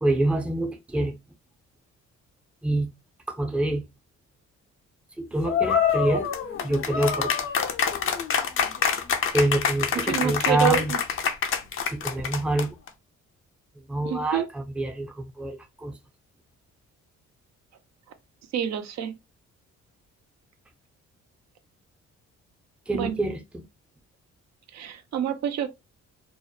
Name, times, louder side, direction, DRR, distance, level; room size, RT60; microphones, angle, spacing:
voice 1, 0.0-1.1 2.6-2.9 3.3-3.8 5.2-6.3 6.6-7.3 9.3-10.9 11.9-12.7 13.9-15.9 22.9-23.6, right 1 dB, 5° right, 0.5 m, -26 dB
sound 1, 5.5-12.9, left 7 dB, 45° left, 0.5 m, -26 dB
voice 2, 9.9-11.0 14.0-14.5 18.5-19.1 22.9-23.2 24.7-25.7, right 10 dB, 60° right, 0.5 m, -27 dB
2.7 x 2.0 x 2.2 m
cardioid pair, 90°, 30 cm